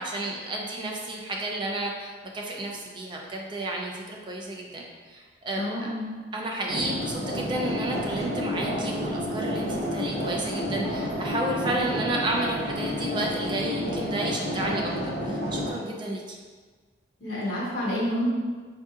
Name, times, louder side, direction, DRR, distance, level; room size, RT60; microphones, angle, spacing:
voice 1, 0.0-5.9 6.3-14.9 15.2-16.4, right 1 dB, 25° right, -1 dB, 0.3 m, -32 dB
voice 2, 5.5-6.1 17.2-18.3, left 1 dB, 75° left, -6 dB, 1.1 m, -29 dB
sound 1, 6.7-15.7, equal, 45° left, 1.0 m, -30 dB
4.7 x 2.6 x 2.4 m, 1.4 s
head